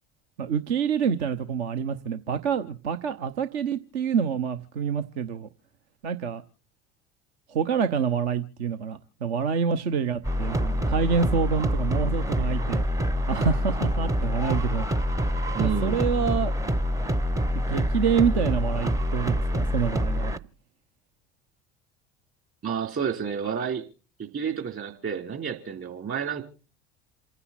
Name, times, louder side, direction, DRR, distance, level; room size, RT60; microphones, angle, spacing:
voice 1, 0.4-5.5 6.0-6.4 7.5-12.8 13.3-14.9 15.6-16.5 17.7-20.3, right 6 dB, 70° right, 9 dB, 0.9 m, -27 dB
sound 1, 10.2-20.4, equal, 10° right, 0.6 m, -26 dB
voice 2, 15.5-16.0 22.6-23.9 24.2-26.4, right 7 dB, 40° right, 5 dB, 3.4 m, -30 dB
28.0 x 9.8 x 4.1 m, 0.38 s
figure-of-eight pair, 60°, 34 cm